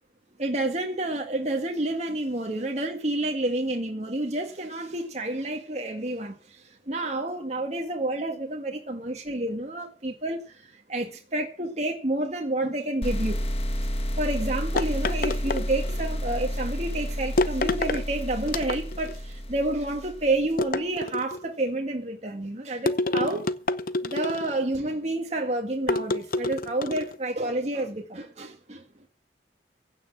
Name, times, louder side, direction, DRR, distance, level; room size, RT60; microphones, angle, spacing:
voice 1, 0.4-6.3 6.9-13.4 14.2-23.5 24.0-28.8, right 2 dB, 40° right, 1.8 m, -29 dB
sound 1, 13.0-20.5, equal, 35° left, 1.4 m, -30 dB
sound 2, 14.8-16.1 17.4-18.0 18.5-19.2 20.6-21.5 22.9-24.6 25.9-27.2, left 2 dB, 55° left, 0.8 m, -28 dB
16.0 x 6.1 x 8.6 m
head